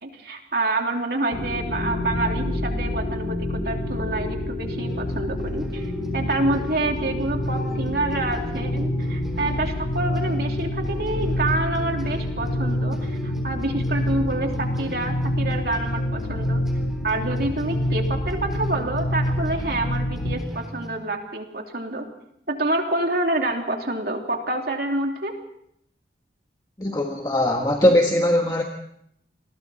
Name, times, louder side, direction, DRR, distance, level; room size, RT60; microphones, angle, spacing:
voice 1, 0.0-5.8 6.1-16.6 17.0-22.1 22.5-25.3, right 2 dB, 55° right, 2 dB, 3.0 m, -27 dB
sound 1, 1.3-20.3, left 1 dB, 90° left, 4.0 m, -27 dB
sound 2, 4.8-20.9, equal, ahead, 3.5 m, -41 dB
voice 2, 26.8-28.6, left 1 dB, 20° left, 2 dB, 1.5 m, -20 dB
29.5 x 21.0 x 4.2 m, 0.72 s
head